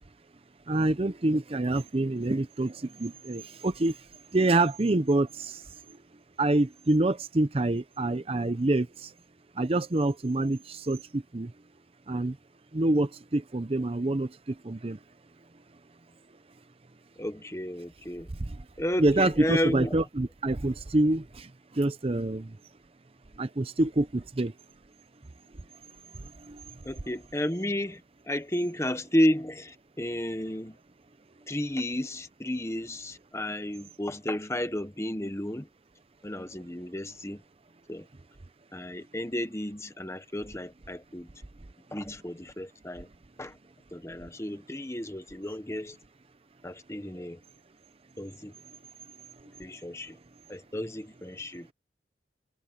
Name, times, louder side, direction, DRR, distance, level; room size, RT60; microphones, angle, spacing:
voice 1, 0.7-3.9 4.3-5.6 6.4-9.1 9.6-11.5 12.1-12.3 12.7-14.3 14.6-15.0 19.0-21.5 21.8-22.5 23.4-24.5 26.5-26.6, right 2 dB, 30° right, 0.6 m, -26 dB
voice 2, 17.2-18.3 18.8-19.9 26.8-28.0 28.3-30.8 31.5-35.7 36.2-37.4 37.9-38.1 38.7-41.3 41.9-43.1 43.4-43.6 43.9-46.0 46.6-47.4 48.2-48.5 49.6-50.2 50.5-51.7, left 1 dB, 15° left, 1.2 m, -32 dB
head